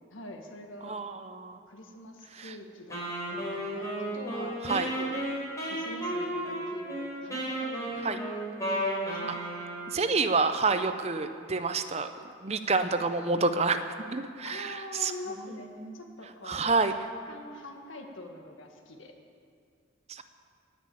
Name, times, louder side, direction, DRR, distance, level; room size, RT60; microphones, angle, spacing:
voice 1, 0.1-1.0 1.7-3.0 3.3-5.2 5.7-8.1 9.1-9.4 14.4-17.0 17.3-19.1, left 2 dB, 90° left, 3 dB, 1.7 m, -44 dB
voice 2, 0.8-1.6 2.4-2.5 4.6-4.9 8.0-8.2 9.1-9.4 9.9-12.1 12.4-13.8 14.1-15.1 15.8-15.9 16.5-16.9 20.1-20.2, right 4 dB, 35° right, 9 dB, 0.6 m, -28 dB
Wind instrument woodwind instrument, 2.9-10.0, right 1 dB, 15° left, 4.0 m, -33 dB
19.0 x 6.3 x 8.4 m, 2.3 s
head